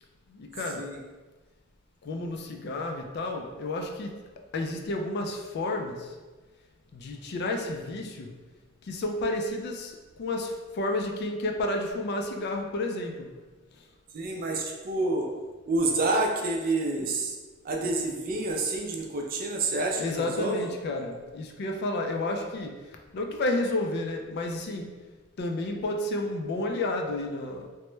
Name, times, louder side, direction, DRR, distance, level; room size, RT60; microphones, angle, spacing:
voice 1, 0.4-0.8 2.0-4.1 4.5-6.0 6.9-8.3 8.9-9.9 10.2-13.3 20.0-22.7 23.1-24.9 25.4-27.7, left 2 dB, 50° left, 2 dB, 0.3 m, -31 dB
voice 2, 14.1-15.3 15.7-17.4 17.6-20.6, right 2 dB, 45° right, 1 dB, 0.4 m, -28 dB
2.9 x 2.1 x 3.1 m, 1.3 s
head